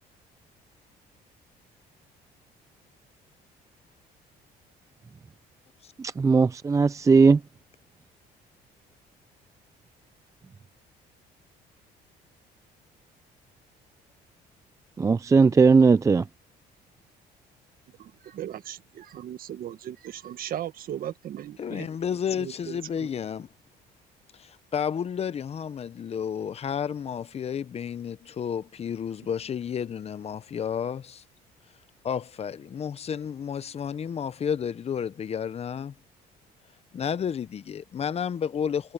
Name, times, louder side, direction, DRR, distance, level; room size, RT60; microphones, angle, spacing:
voice 1, 6.0-7.4 15.0-16.3, right 4 dB, 20° right, 0.4 m, -18 dB
voice 2, 18.0-21.9 22.3-23.1, right 11 dB, 60° right, 1.4 m, -37 dB
voice 3, 21.6-23.5 24.4-31.2 32.0-35.9 36.9-38.9, left 7 dB, 35° left, 0.8 m, -31 dB
cardioid pair, 110°, 17 cm